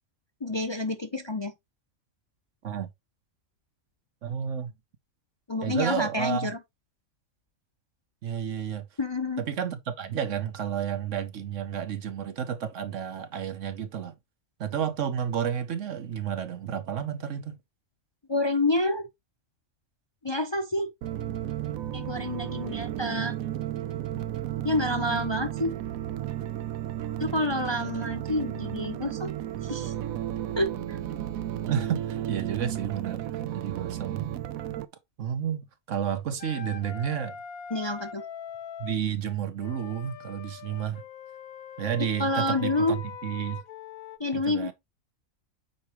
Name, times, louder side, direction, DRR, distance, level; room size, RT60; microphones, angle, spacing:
voice 1, 0.4-1.5 5.5-6.6 9.0-9.4 18.3-19.1 20.2-20.9 21.9-23.4 24.6-25.8 27.2-29.3 29.6-29.9 30.6-31.0 37.7-38.2 42.2-43.0 44.2-44.7, left 2 dB, 25° left, 0.7 m, -28 dB
voice 2, 4.2-4.7 5.6-6.5 8.2-8.9 9.4-14.1 14.6-17.6 31.7-33.2 33.5-34.3 35.2-37.4 38.8-41.0 41.8-43.6 44.3-44.7, right 8 dB, 65° right, 1.2 m, -31 dB
sound 1, 21.0-34.8, right 12 dB, 85° right, 1.1 m, -33 dB
Wind instrument woodwind instrument, 36.4-39.0 39.6-44.2, left 7 dB, 85° left, 1.3 m, -42 dB
8.4 x 4.7 x 3.0 m
omnidirectional pair, 1.4 m